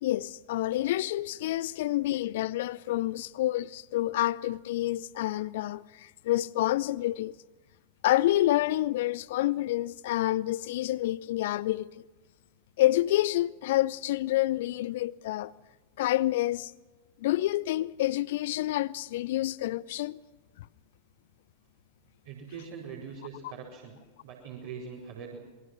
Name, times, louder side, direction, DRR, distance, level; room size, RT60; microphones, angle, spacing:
voice 1, 0.0-7.3 8.0-11.9 12.8-15.5 16.0-16.7 17.2-20.2, left 15 dB, 55° left, 0.6 m, -28 dB
voice 2, 22.2-24.0 24.2-25.4, right 6 dB, 55° right, 4.9 m, -42 dB
27.5 x 22.0 x 6.1 m
figure-of-eight pair, 90°, 0 cm